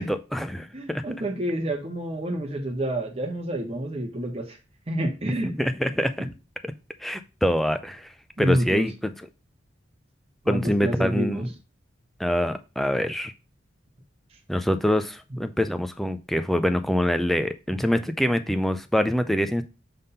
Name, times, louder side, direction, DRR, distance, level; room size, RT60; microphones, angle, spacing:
voice 1, 0.0-1.0 5.6-6.3 6.6-6.7 7.0-8.1 8.4-9.1 10.5-11.4 12.2-13.3 14.5-19.6, equal, ahead, 9 dB, 0.4 m, -25 dB
voice 2, 0.7-4.6 4.9-5.5 6.2-6.3 8.4-8.9 10.4-11.5 17.8-17.9, right 1 dB, 35° right, 2 dB, 1.3 m, -28 dB
5.7 x 3.5 x 5.4 m, 0.30 s
head